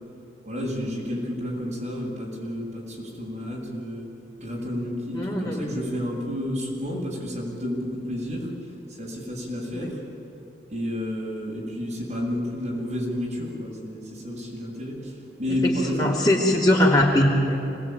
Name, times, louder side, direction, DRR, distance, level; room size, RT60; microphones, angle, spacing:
voice 1, 0.4-4.1 4.4-8.5 9.0-10.0 10.7-15.1 15.4-16.1, left 1 dB, 40° right, -3 dB, 7.6 m, -30 dB
voice 2, 5.1-5.6 9.7-9.9 15.5-17.7, left 1 dB, 25° left, -4 dB, 2.9 m, -21 dB
27.0 x 20.5 x 9.2 m, 2.8 s
head